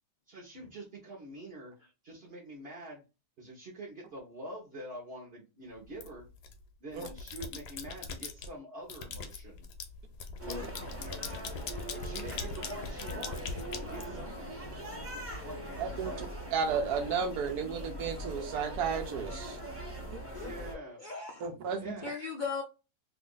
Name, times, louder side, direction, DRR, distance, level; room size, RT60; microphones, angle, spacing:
voice 1, 0.3-1.7 2.0-3.0 3.4-6.2 6.8-9.7 10.4-10.6 11.0-11.4 11.9-14.6 15.4-16.3 20.4-21.0 21.8-22.1, right 1 dB, 45° right, 1.1 m, -46 dB
sound 1, 6.0-6.5 6.9-8.5 8.9-14.7, left 5 dB, 80° left, 1.3 m, -41 dB
sound 2, 10.4-20.7, right 1 dB, 10° right, 0.8 m, -41 dB
voice 2, 15.8-16.1 16.5-19.6 21.4-22.0, right 6 dB, 75° right, 1.2 m, -33 dB
voice 3, 20.0-21.5 22.0-22.6, left 5 dB, 60° left, 0.5 m, -39 dB
3.0 x 2.5 x 3.8 m
omnidirectional pair, 1.7 m